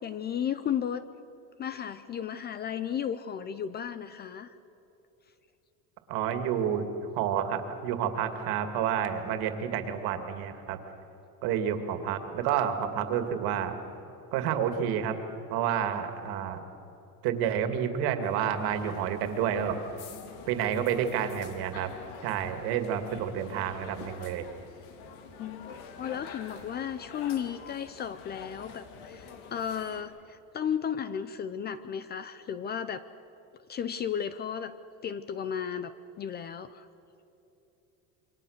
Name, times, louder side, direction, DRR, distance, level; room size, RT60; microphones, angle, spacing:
voice 1, 0.0-1.1 1.6-4.6 25.4-33.0 33.7-34.7 35.0-36.9, left 8 dB, 25° left, 13 dB, 0.5 m, -34 dB
voice 2, 6.1-10.8 11.4-13.7 14.3-15.2 15.5-16.6 17.2-19.8 20.5-21.9 22.2-24.5, right 8 dB, 60° right, 7 dB, 2.4 m, -29 dB
sound 1, 18.2-30.0, left 6 dB, 80° left, 2.6 m, -47 dB
28.0 x 23.5 x 6.6 m, 3.0 s
cardioid pair, 160°, 41 cm